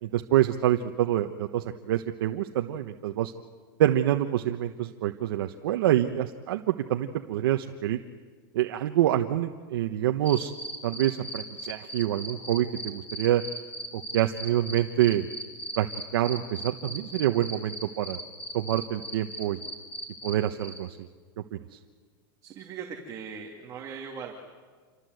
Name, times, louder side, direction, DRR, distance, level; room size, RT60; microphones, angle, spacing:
voice 1, 0.0-3.3 3.8-8.0 8.5-10.5 10.8-13.4 14.1-15.3 15.8-15.9 16.1-18.2 18.5-19.6 20.2-20.9 21.5-21.6, right 12 dB, 80° right, 5 dB, 1.2 m, -26 dB
sound 1, 10.3-20.3 20.6-20.8, right 1 dB, 10° left, 4.1 m, -37 dB
voice 2, 22.4-24.3, right 6 dB, 25° right, 1 dB, 2.4 m, -39 dB
28.0 x 24.5 x 8.0 m, 1.5 s
supercardioid pair, 160°, 12 cm